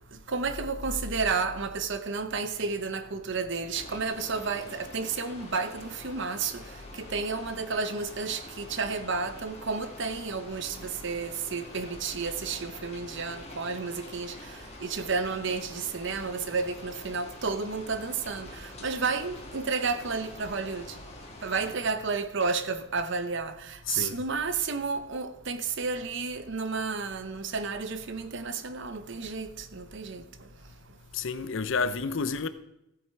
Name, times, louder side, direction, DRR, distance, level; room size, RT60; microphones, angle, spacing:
voice 1, 0.1-6.6 6.9-21.0 21.4-30.2, right 4 dB, 65° right, 0.9 m, -32 dB
sound 1, 3.7-21.7, left 1 dB, 35° left, 2.0 m, -46 dB
voice 2, 23.9-24.2 31.1-32.5, left 4 dB, 65° left, 0.7 m, -30 dB
14.5 x 7.9 x 4.6 m
head